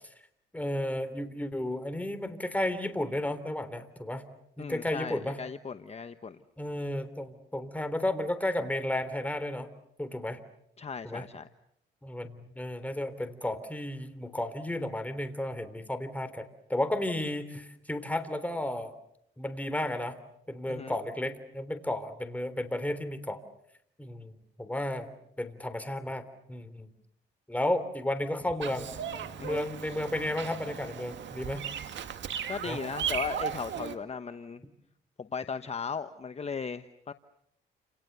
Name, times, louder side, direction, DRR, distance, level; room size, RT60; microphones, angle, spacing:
voice 1, 0.5-4.2 4.6-5.4 6.6-9.7 10.0-10.4 11.0-11.2 12.0-18.9 19.4-20.2 20.5-23.4 24.0-24.3 24.6-25.1 25.4-26.9 27.5-28.9 29.4-31.6 32.7-32.8, left 1 dB, 5° left, 10 dB, 3.4 m, -33 dB
voice 2, 4.6-6.4 10.8-11.5 20.7-21.0 29.4-29.7 32.5-34.6 35.2-37.1, left 5 dB, 30° left, 10 dB, 1.1 m, -37 dB
Bird vocalization bird call bird song, 28.6-34.0, right 8 dB, 65° right, 2.1 m, -37 dB
30.0 x 28.0 x 6.8 m, 0.74 s
cardioid pair, 90°, 20 cm